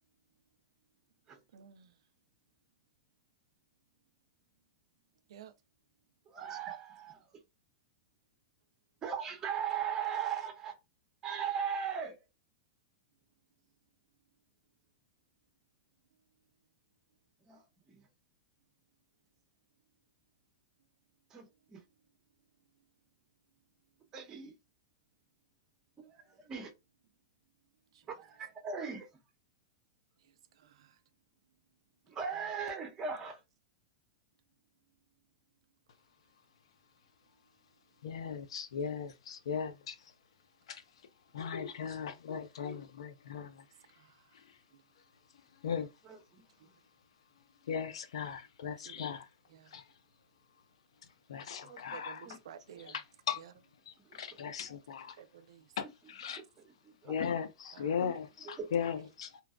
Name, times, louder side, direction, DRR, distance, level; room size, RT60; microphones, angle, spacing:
voice 1, 1.5-1.9 5.3-5.5 30.8-30.9 48.9-49.2 49.5-49.7 51.9-52.9 55.2-55.6 57.7-57.9, right 9 dB, 75° right, 0.3 m, -51 dB
voice 2, 6.3-7.3 9.0-10.7 11.2-12.2 17.5-18.1 21.3-21.8 24.1-24.5 26.1-26.7 28.1-29.1 32.1-33.4 46.0-46.7 51.6-52.0 52.2-52.4 54.0-54.2 56.4-56.5 56.8-57.1 58.0-58.1 58.4-58.7, right 7 dB, 20° right, 0.8 m, -39 dB
voice 3, 38.0-40.1 40.7-40.8 41.3-43.7 44.3-44.6 45.5-45.9 47.6-49.3 49.7-49.9 51.3-52.4 52.8-53.4 53.9-55.2 55.8-56.4 57.1-59.4, left 7 dB, 85° left, 0.5 m, -38 dB
2.8 x 2.2 x 2.4 m
supercardioid pair, 145°, 3 cm